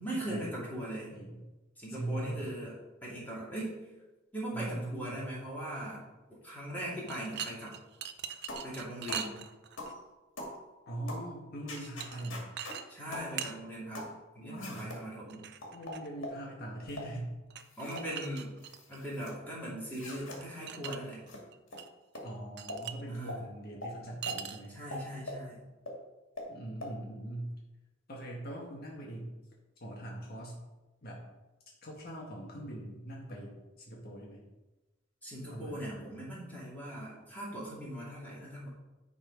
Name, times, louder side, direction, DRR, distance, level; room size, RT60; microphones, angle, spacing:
voice 1, 0.0-1.1 1.8-2.7 3.0-3.7 4.3-6.0 6.4-7.7 8.6-9.4 12.9-14.1 14.3-15.4 17.8-18.5 18.9-21.2 23.1-23.3 24.7-25.7 35.2-38.7, right 1 dB, 10° left, -7 dB, 2.3 m, -40 dB
voice 2, 1.1-1.4 1.9-2.5 4.5-5.3 10.9-12.5 14.4-15.0 15.7-17.3 17.8-17.9 22.2-24.8 26.5-27.5 28.1-29.3 29.8-30.6 31.0-31.2 31.8-34.4 35.5-36.2, right 1 dB, 50° left, -2 dB, 1.6 m, -41 dB
sound 1, 7.0-9.9 11.8-12.3 12.6-12.8 13.1-13.6 15.3-16.1 17.5-19.0 20.4-21.0 21.2-21.9 22.1-22.2 22.6-23.0 24.2-24.8, right 9 dB, 60° right, 0.5 m, -41 dB
sound 2, 8.5-8.7 9.1-9.3 9.8-10.0 10.4-10.6 11.1-11.3 11.7-12.8 13.1-13.3 13.9-14.2 14.6-15.0 15.6-16.4 16.9-17.1 17.6-18.1 18.4-19.3 19.9-20.4 20.8-21.0 21.3-21.4 21.7-21.8 22.1-22.3 22.7-22.8 23.3-23.4 23.8-23.9 24.3-24.4 24.9-25.4 25.9-26.0 26.4-26.5 26.8-26.9, left 1 dB, 75° left, 2.2 m, -42 dB
10.0 x 4.1 x 5.1 m, 1.1 s
head